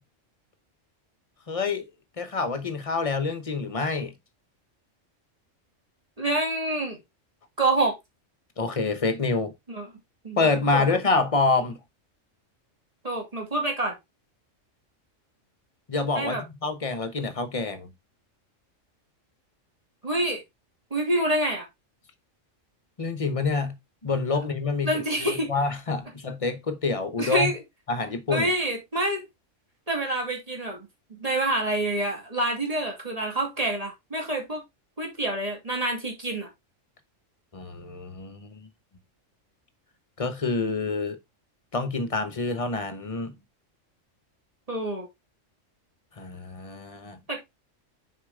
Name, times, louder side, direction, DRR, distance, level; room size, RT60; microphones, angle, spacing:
voice 1, 1.5-1.9 2.2-4.1 8.6-9.5 10.4-11.8 15.9-17.9 23.0-23.8 24.0-27.5 27.9-28.5 37.5-38.7 40.2-41.2 41.7-43.3 46.2-47.2, left 3 dB, 30° left, 0.9 m, -27 dB
voice 2, 6.2-7.0 7.6-8.0 9.7-9.9 10.2-10.4 10.7-10.9 13.0-14.0 16.1-16.4 20.0-20.4 20.9-21.7 24.8-25.5 27.2-27.6 28.3-29.2 29.9-34.6 35.0-36.5 44.7-45.1 47.3-47.4, right 1 dB, 30° right, 2.7 m, -27 dB
6.7 x 4.9 x 3.6 m
omnidirectional pair, 1.3 m